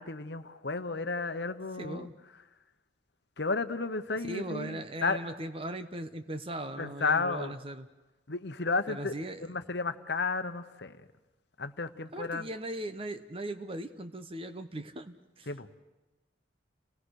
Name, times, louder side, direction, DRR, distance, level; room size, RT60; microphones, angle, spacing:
voice 1, 0.0-2.1 3.4-5.2 6.8-7.5 8.3-9.1 9.4-11.0 11.6-12.5 15.5-15.8, left 4 dB, 60° left, 10 dB, 1.1 m, -33 dB
voice 2, 1.8-2.1 4.3-7.9 8.9-9.5 12.1-15.5, right 1 dB, 30° right, 10 dB, 1.0 m, -39 dB
29.5 x 19.0 x 6.5 m, 1.1 s
head